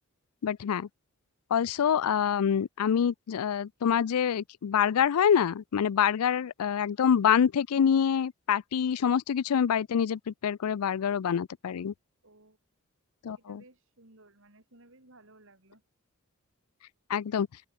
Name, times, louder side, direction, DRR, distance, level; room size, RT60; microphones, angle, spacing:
voice 1, 0.4-0.9 1.5-11.9 13.2-13.6 17.1-17.5, left 8 dB, 90° left, 0.4 m, -26 dB
voice 2, 12.2-12.6 13.4-15.8, right 2 dB, 60° right, 5.7 m, -58 dB
open air
head